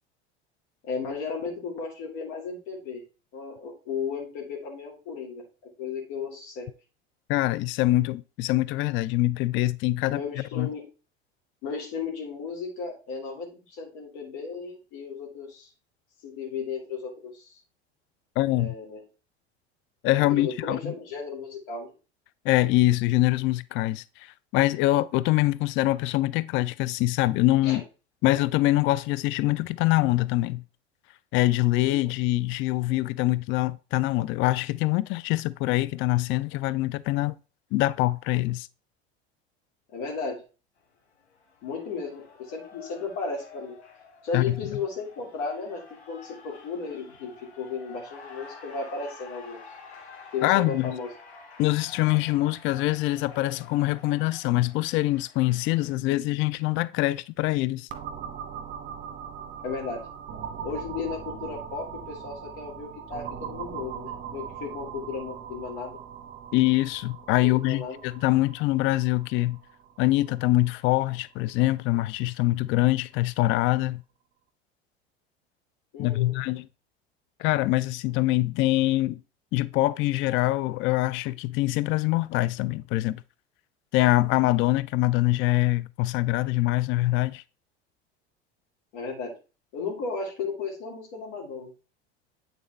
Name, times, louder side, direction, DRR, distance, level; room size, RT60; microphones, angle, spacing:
voice 1, 0.8-3.0 3.3-5.4 5.8-6.7 10.1-10.8 11.6-15.7 16.2-17.6 18.4-19.0 20.3-21.9 27.6-27.8 39.9-40.4 41.6-43.7 44.2-49.6 50.3-51.1 59.6-60.0 60.6-65.9 67.4-68.0 75.9-76.4 88.9-89.4 89.7-91.7, left 5 dB, 60° left, 2.3 m, -34 dB
voice 2, 7.3-10.2 10.5-10.7 18.4-18.7 20.0-20.9 22.4-27.8 28.2-30.6 31.3-37.4 37.7-38.7 44.3-44.6 50.4-50.9 51.6-57.9 66.5-69.6 70.0-74.0 76.0-76.7 77.4-79.2 79.5-83.2 83.9-87.4, left 17 dB, 40° left, 0.4 m, -24 dB
Cheering, 40.8-55.9, left 4 dB, 75° left, 2.1 m, -49 dB
sound 1, 57.9-71.5, right 8 dB, 35° right, 1.2 m, -40 dB
8.5 x 4.0 x 3.2 m
hypercardioid pair, 75°, 33 cm